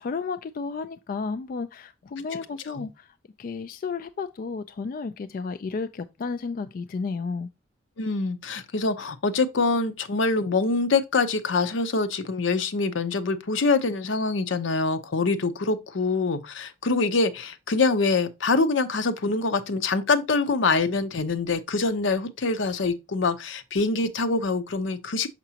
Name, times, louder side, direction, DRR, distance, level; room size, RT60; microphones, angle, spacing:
voice 1, 0.0-7.5, left 4 dB, 50° left, 0.3 m, -32 dB
voice 2, 8.0-25.3, left 3 dB, 80° left, 0.7 m, -25 dB
5.9 x 5.9 x 2.8 m
head